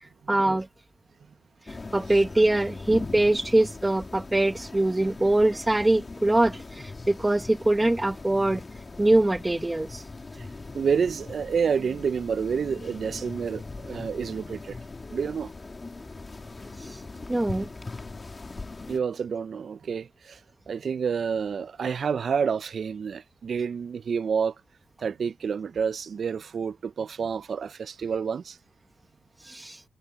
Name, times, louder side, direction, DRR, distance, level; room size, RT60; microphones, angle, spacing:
voice 1, 0.0-0.7 1.6-8.6 9.0-10.1 16.8-17.0 17.3-17.7 29.4-29.8, right 1 dB, 15° right, 1.0 m, -23 dB
sound 1, 1.7-19.0, left 3 dB, 25° left, 2.0 m, -40 dB
voice 2, 10.7-14.8 15.1-15.5 18.9-20.4 20.7-24.5 25.0-28.6, right 6 dB, 50° right, 0.5 m, -29 dB
cardioid pair, 100°, 0 cm